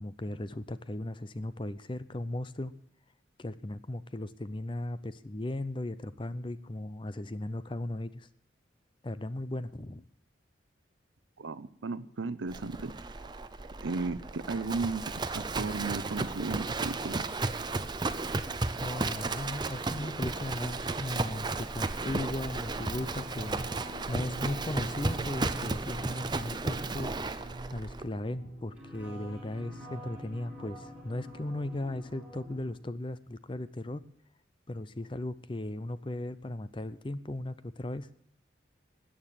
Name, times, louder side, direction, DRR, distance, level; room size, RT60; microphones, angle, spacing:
voice 1, 0.0-2.7 3.4-8.3 9.0-10.0 18.8-23.6 24.1-27.1 27.7-34.1 34.7-38.1, left 1 dB, 25° left, 14 dB, 0.6 m, -37 dB
voice 2, 11.4-12.9 13.8-17.2, right 3 dB, 85° right, 16 dB, 0.7 m, -35 dB
Livestock farm animals working animals, 12.5-28.0, right 3 dB, 25° right, 0.6 m, -34 dB
sound 1, 22.6-32.7, right 1 dB, 5° right, 5.6 m, -45 dB
13.5 x 8.9 x 7.4 m, 0.69 s
head